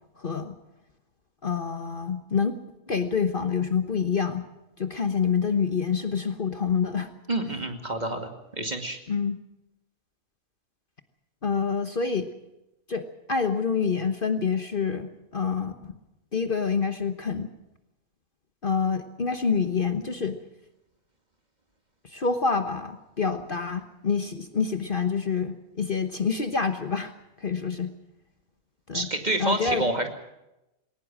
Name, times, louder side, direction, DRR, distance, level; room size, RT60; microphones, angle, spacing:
voice 1, 0.2-0.5 1.4-2.5 2.9-4.5 4.8-7.1 9.1-9.4 11.4-12.3 12.9-15.9 16.3-17.5 18.6-20.4 22.0-27.1 27.4-27.9 28.9-29.1 29.4-29.8, left 5 dB, 40° left, 8 dB, 1.3 m, -27 dB
voice 2, 7.3-9.0 28.9-30.1, right 2 dB, 30° right, 5 dB, 2.4 m, -28 dB
20.5 x 18.5 x 7.4 m, 0.90 s
omnidirectional pair, 1.4 m